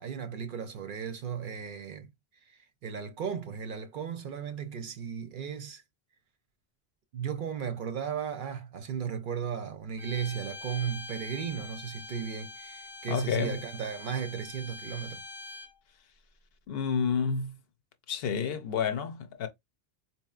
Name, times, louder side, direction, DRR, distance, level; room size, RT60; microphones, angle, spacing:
voice 1, 0.0-2.1 2.5-5.8 7.1-15.2, right 7 dB, 60° right, 0.6 m, -35 dB
Bowed string instrument, 10.0-15.7, left 3 dB, 30° left, 0.6 m, -44 dB
voice 2, 13.1-13.6 16.7-17.6 18.1-19.5, left 6 dB, 70° left, 0.8 m, -30 dB
4.0 x 2.8 x 2.4 m
omnidirectional pair, 1.0 m